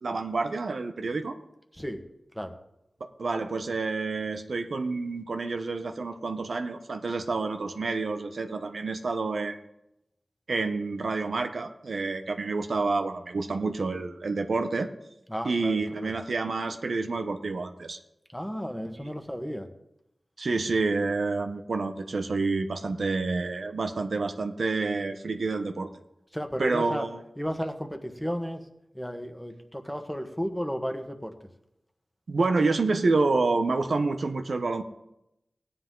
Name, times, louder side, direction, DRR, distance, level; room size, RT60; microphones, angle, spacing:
voice 1, 0.0-1.4 3.2-9.6 10.5-14.9 15.4-18.0 19.0-19.1 20.4-25.9 26.6-27.2 32.3-34.8, right 3 dB, 85° right, 7 dB, 1.0 m, -28 dB
voice 2, 15.3-16.1 18.3-19.7 26.3-27.1 27.4-28.6 28.9-31.3, equal, 5° left, 5 dB, 1.4 m, -33 dB
17.0 x 9.9 x 3.9 m, 0.84 s
wide cardioid pair, 65°, 0 cm